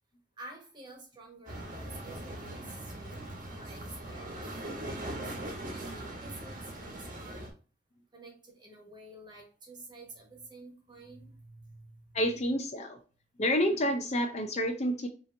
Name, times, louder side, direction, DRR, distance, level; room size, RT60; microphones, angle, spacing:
voice 1, 0.4-5.4 5.7-7.5 8.1-12.1, right 2 dB, 25° right, 0 dB, 1.3 m, -50 dB
sound 1, 1.5-7.5, right 1 dB, 45° right, 1.2 m, -40 dB
voice 2, 12.1-13.0 13.4-15.1, equal, 35° left, 5 dB, 0.5 m, -29 dB
5.5 x 2.9 x 2.6 m, 0.36 s
head